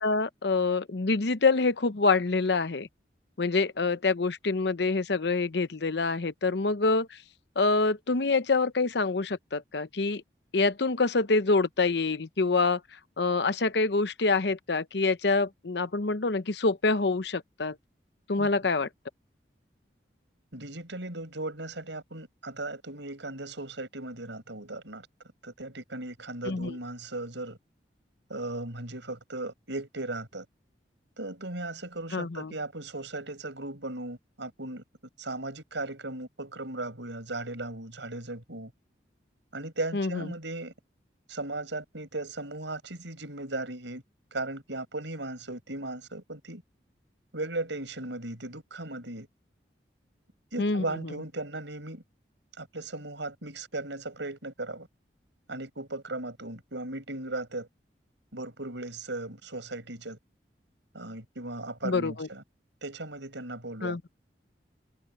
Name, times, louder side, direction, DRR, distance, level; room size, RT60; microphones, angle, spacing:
voice 1, 0.0-2.9 3.4-7.1 7.6-10.2 10.5-12.8 13.2-17.8 18.3-18.9 26.5-26.7 32.1-32.5 39.9-40.2 50.6-50.8 61.8-62.3 63.8-64.0, left 3 dB, 70° left, 0.8 m, -26 dB
voice 2, 20.5-25.1 25.4-27.6 28.3-30.4 31.2-34.8 35.2-38.7 39.5-40.7 41.3-44.0 44.3-46.6 47.3-49.3 50.5-52.0 52.6-54.9 55.5-57.7 58.3-60.2 60.9-62.4 62.8-64.1, right 2 dB, 90° right, 6.7 m, -37 dB
head